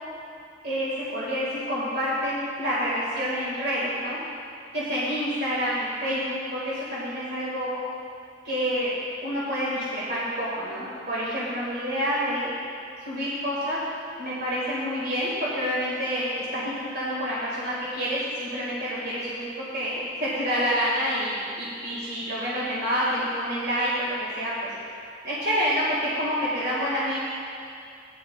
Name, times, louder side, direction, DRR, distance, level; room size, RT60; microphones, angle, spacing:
voice 1, 0.6-4.2 4.7-7.8 8.4-8.9 9.2-12.5 13.0-13.8 14.2-24.5 25.2-27.2, equal, 60° right, -8 dB, 2.0 m, -28 dB
16.5 x 10.5 x 2.4 m, 2.5 s
head